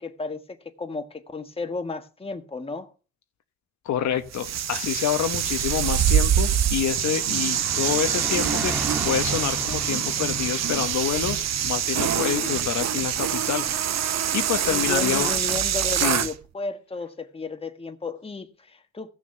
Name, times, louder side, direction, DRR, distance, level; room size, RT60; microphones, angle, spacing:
voice 1, 0.0-2.9 12.4-12.5 14.7-19.1, left 3 dB, 20° left, 1.5 m, -33 dB
voice 2, 3.8-8.8 9.0-13.7 13.9-15.3 16.0-16.3, left 10 dB, 65° left, 1.1 m, -27 dB
Car passing by, 4.0-4.2 4.6-15.6, right 1 dB, 5° right, 1.8 m, -38 dB
sound 1, 4.3-16.3, right 9 dB, 60° right, 0.9 m, -25 dB
16.0 x 6.3 x 6.8 m
cardioid pair, 90°, 30 cm